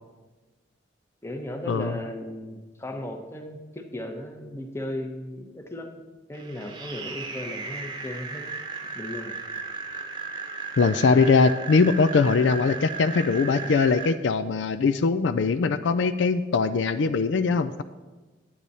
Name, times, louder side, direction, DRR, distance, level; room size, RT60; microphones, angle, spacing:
voice 1, 1.2-8.5 8.8-9.4, left 1 dB, 15° left, 5 dB, 0.9 m, -36 dB
sound 1, 6.3-14.1, right 4 dB, 25° right, 0.9 m, -36 dB
voice 2, 10.8-17.8, left 4 dB, 75° left, 12 dB, 0.4 m, -21 dB
9.9 x 8.7 x 4.1 m, 1.2 s
head